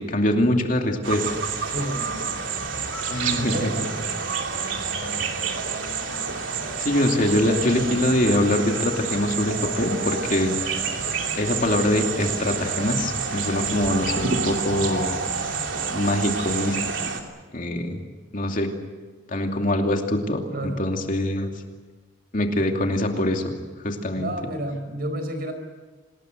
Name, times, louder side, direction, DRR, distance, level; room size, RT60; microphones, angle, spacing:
voice 1, 0.0-1.5 3.1-3.7 6.8-10.6 11.4-15.2 15.9-16.8 17.5-18.0 18.3-18.7 19.3-21.5 22.3-24.3, left 1 dB, 45° left, 3 dB, 2.7 m, -23 dB
sound 1, 1.0-17.2, right 5 dB, 80° right, 2.9 m, -28 dB
voice 2, 1.6-2.3 3.3-3.7 20.5-20.8 24.1-25.5, right 1 dB, 50° right, 7 dB, 4.7 m, -30 dB
27.0 x 20.0 x 7.9 m, 1.3 s
head